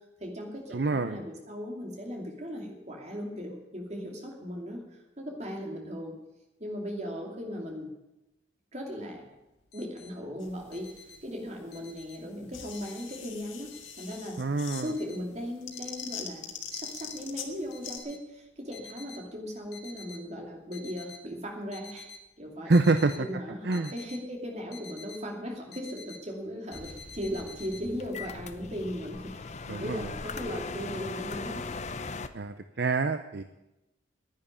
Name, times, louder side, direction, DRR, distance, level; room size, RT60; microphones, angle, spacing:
voice 1, 0.2-6.1 6.6-7.9 8.7-9.2 9.7-14.4 14.8-22.1 22.4-22.7 23.2-31.7, equal, 35° right, 1 dB, 2.6 m, -38 dB
voice 2, 0.7-1.2 14.4-14.9 22.7-23.3 23.6-23.9 29.7-30.0 32.3-33.4, right 3 dB, 55° right, 9 dB, 0.6 m, -26 dB
sound 1, 9.2-9.3 9.5-10.1 10.5-12.3 12.7-13.4 13.7-15.4 15.7-16.2 16.7-17.3 17.7-19.3 19.6-20.2 20.6-21.3 21.6-22.2 22.7-25.2 25.5-26.3 26.7-27.9, left 4 dB, 55° left, 1.7 m, -49 dB
sound 2, 10.4-18.0, left 7 dB, 85° left, 1.8 m, -43 dB
sound 3, 26.7-32.3, left 4 dB, 35° left, 0.6 m, -39 dB
10.5 x 9.5 x 9.8 m, 0.96 s
head